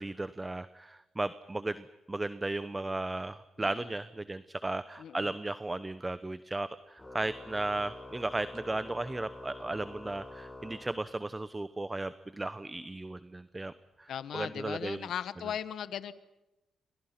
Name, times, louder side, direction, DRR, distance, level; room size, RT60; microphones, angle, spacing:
voice 1, 0.0-13.7 14.0-15.1, right 2 dB, 20° right, 14 dB, 0.9 m, -35 dB
voice 2, 3.6-3.9 5.0-5.3 14.1-16.1, left 9 dB, 75° left, 15 dB, 1.2 m, -38 dB
Organ, 7.0-11.5, left 2 dB, 10° left, 7.9 m, -47 dB
29.5 x 25.0 x 5.9 m, 1.0 s
supercardioid pair, 60°, 0 cm